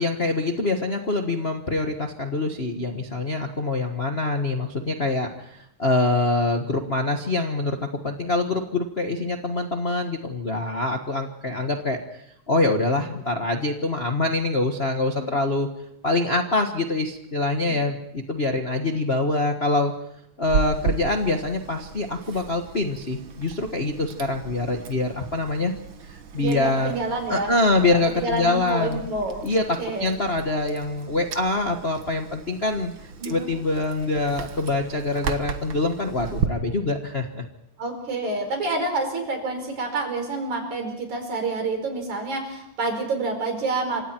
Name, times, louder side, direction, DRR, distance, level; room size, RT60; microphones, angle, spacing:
voice 1, 0.0-7.8 8.0-12.0 12.5-15.7 16.0-19.9 20.4-25.7 26.1-26.9 27.3-29.0 29.4-32.9 33.2-37.4, left 2 dB, 40° left, 3 dB, 0.9 m, -25 dB
Chewing mastication, 20.4-36.5, right 6 dB, 55° right, 1.5 m, -35 dB
voice 2, 26.3-27.5 27.9-29.4 29.8-30.2 33.2-33.5 37.8-44.0, right 2 dB, 70° right, 4 dB, 6.3 m, -28 dB
28.0 x 26.0 x 4.5 m, 0.75 s
omnidirectional pair, 3.4 m